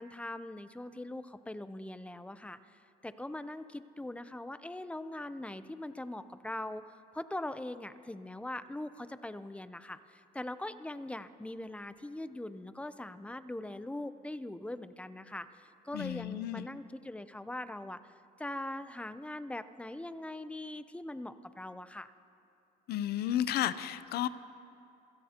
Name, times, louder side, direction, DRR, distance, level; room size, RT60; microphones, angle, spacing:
voice 1, 0.0-2.6 3.0-6.8 7.1-18.1 18.4-22.1, left 1 dB, 5° left, 12 dB, 0.5 m, -41 dB
voice 2, 15.9-16.7 22.9-24.3, left 11 dB, 70° left, 14 dB, 0.6 m, -32 dB
28.0 x 16.0 x 2.9 m, 2.6 s
cardioid pair, 110°, 17 cm